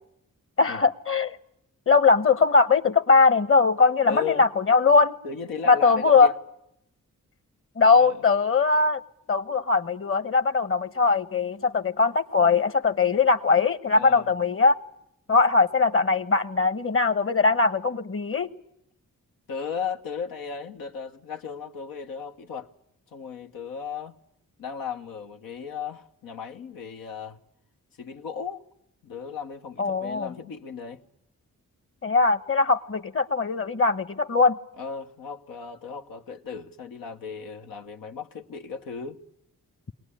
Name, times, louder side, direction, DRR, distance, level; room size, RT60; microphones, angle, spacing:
voice 1, 0.6-1.4 1.9-5.2 5.7-6.3 7.8-9.0 9.3-14.7 15.3-18.5 29.8-30.3 32.0-34.6, left 4 dB, 40° left, 1.1 m, -21 dB
voice 2, 4.1-4.5 5.2-6.3 8.0-8.2 13.9-14.3 19.5-22.7 23.1-24.2 24.6-27.4 28.0-28.6 29.0-31.0 34.8-39.2, left 6 dB, 90° left, 1.1 m, -36 dB
22.5 x 18.5 x 9.9 m
cardioid pair, 55°, 33 cm